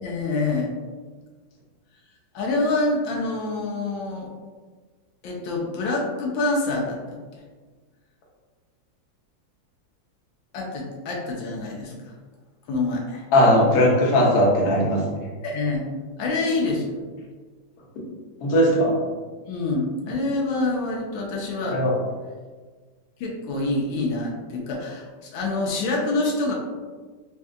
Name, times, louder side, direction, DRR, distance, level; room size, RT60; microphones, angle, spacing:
voice 1, 0.0-0.7 2.3-4.3 5.2-7.0 10.5-12.2 12.7-13.3 15.4-15.8 16.2-17.0 19.5-21.8 23.2-26.5, left 2 dB, 85° left, -2 dB, 1.4 m, -26 dB
voice 2, 13.3-15.0 18.4-18.9 21.6-21.9, equal, 60° left, -3 dB, 1.2 m, -18 dB
4.2 x 2.7 x 2.3 m, 1.4 s
omnidirectional pair, 2.1 m